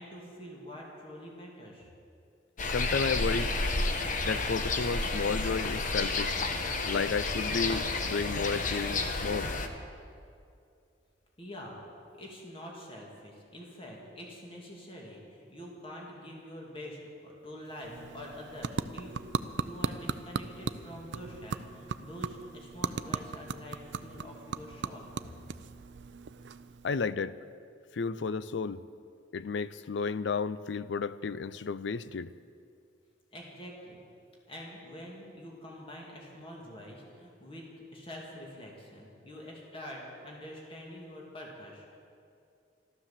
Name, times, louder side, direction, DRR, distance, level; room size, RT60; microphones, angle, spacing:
voice 1, 0.0-1.9 11.4-11.8 12.1-19.2 19.6-25.1 33.3-34.0 34.5-42.0, equal, 30° left, -2 dB, 2.6 m, -46 dB
sound 1, 2.6-9.7, left 3 dB, 45° left, 1.1 m, -31 dB
voice 2, 2.7-3.5 4.2-6.4 6.9-9.5 26.8-27.4 27.9-28.8 29.3-32.3, left 5 dB, 70° left, 16 dB, 0.5 m, -32 dB
sound 2, 17.7-27.1, right 5 dB, 70° right, 0.5 m, -38 dB
13.0 x 12.5 x 7.4 m, 2.5 s
head